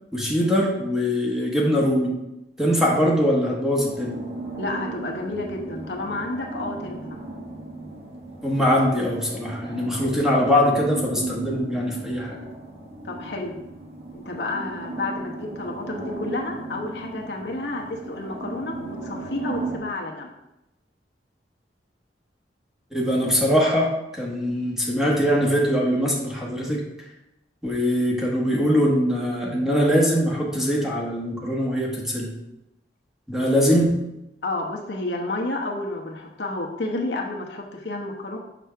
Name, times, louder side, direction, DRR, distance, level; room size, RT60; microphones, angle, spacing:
voice 1, 0.1-2.1 2.6-4.2 8.4-12.4 22.9-26.8 27.6-32.3 33.3-33.9, equal, 5° right, -3 dB, 1.4 m, -22 dB
sound 1, 3.9-19.8, right 2 dB, 35° right, 1.2 m, -36 dB
voice 2, 4.6-7.2 13.0-13.6 14.1-20.3 33.3-33.5 34.4-38.4, left 2 dB, 80° left, 0 dB, 1.0 m, -30 dB
6.1 x 6.1 x 3.4 m, 0.92 s
head